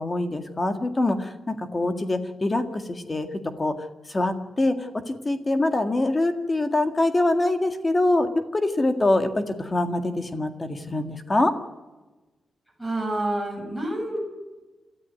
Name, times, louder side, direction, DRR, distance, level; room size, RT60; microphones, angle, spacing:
voice 1, 0.0-3.3 3.6-3.7 4.1-11.5, left 2 dB, 20° left, 7 dB, 1.9 m, -24 dB
voice 2, 12.8-14.2, right 1 dB, 5° left, 2 dB, 6.8 m, -28 dB
28.0 x 14.0 x 9.4 m, 1.2 s
wide cardioid pair, 175°, 0 cm